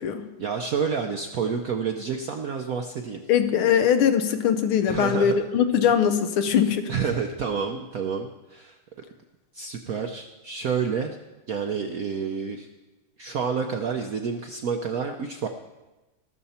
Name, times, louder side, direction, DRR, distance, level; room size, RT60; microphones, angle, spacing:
voice 1, 0.4-3.2 4.9-5.4 6.9-8.8 9.5-11.2 11.5-12.7 13.2-15.5, right 6 dB, 70° right, 4 dB, 0.8 m, -29 dB
voice 2, 3.3-6.9, left 8 dB, 85° left, 8 dB, 1.8 m, -21 dB
14.0 x 12.5 x 4.3 m, 1.1 s
omnidirectional pair, 2.3 m